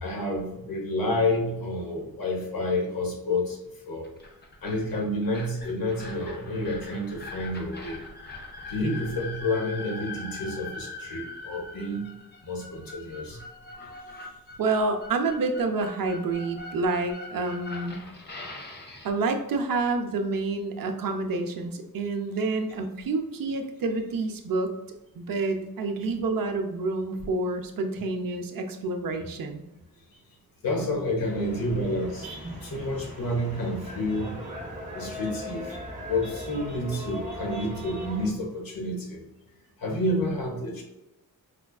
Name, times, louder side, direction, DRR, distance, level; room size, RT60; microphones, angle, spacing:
voice 1, 0.0-4.1 4.6-8.0 8.7-12.1 12.4-13.4 30.1-30.2 30.6-32.3 32.6-34.4 34.9-35.8 36.0-39.2 39.8-40.8, left 1 dB, 70° left, 0 dB, 1.0 m, -29 dB
sound 1, 4.0-19.1, left 2 dB, 30° left, 0.5 m, -42 dB
voice 2, 14.6-18.0 19.0-24.8 25.2-29.6, right 3 dB, 65° right, 6 dB, 0.5 m, -28 dB
sound 2, 31.2-38.3, equal, 20° right, 0.6 m, -38 dB
4.9 x 2.3 x 2.3 m, 0.92 s
wide cardioid pair, 180°, 36 cm